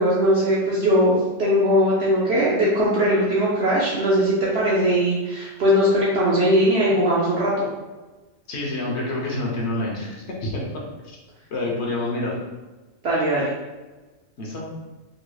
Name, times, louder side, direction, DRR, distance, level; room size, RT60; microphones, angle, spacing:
voice 1, 0.0-7.7 13.0-13.5, equal, 60° right, -6 dB, 0.8 m, -20 dB
voice 2, 8.5-11.2 11.5-12.3 14.4-14.8, left 2 dB, 60° left, -2 dB, 1.1 m, -28 dB
3.9 x 2.9 x 2.2 m, 1.2 s
omnidirectional pair, 1.4 m